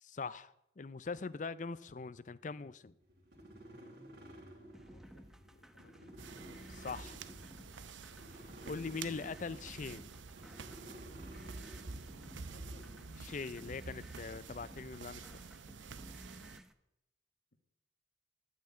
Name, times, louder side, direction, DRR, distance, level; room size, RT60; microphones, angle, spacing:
voice 1, 0.0-2.9 6.7-7.2 8.7-10.1 13.2-15.4, left 4 dB, 40° left, 0.5 m, -42 dB
sound 1, 3.0-12.9, equal, 55° right, 3.2 m, -55 dB
voice 2, 4.7-6.1 12.0-13.5, left 1 dB, 65° left, 1.5 m, -64 dB
sound 2, 4.7-16.7, equal, 5° right, 0.6 m, -57 dB
sound 3, 6.2-16.6, right 4 dB, 90° right, 0.7 m, -49 dB
11.5 x 9.4 x 8.5 m
head